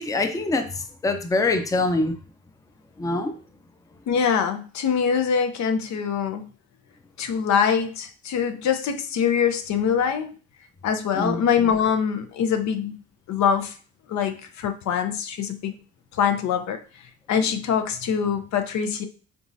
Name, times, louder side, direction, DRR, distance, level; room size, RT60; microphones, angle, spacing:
voice 1, 0.0-2.2 3.0-3.3 11.1-11.4, left 2 dB, 10° left, 0.5 m, -24 dB
voice 2, 4.1-6.4 7.2-10.3 10.8-12.9 13.3-13.7 14.1-15.7 16.1-16.8 17.3-19.0, left 7 dB, 65° left, 0.6 m, -23 dB
4.0 x 3.5 x 2.6 m
cardioid pair, 90°, 30 cm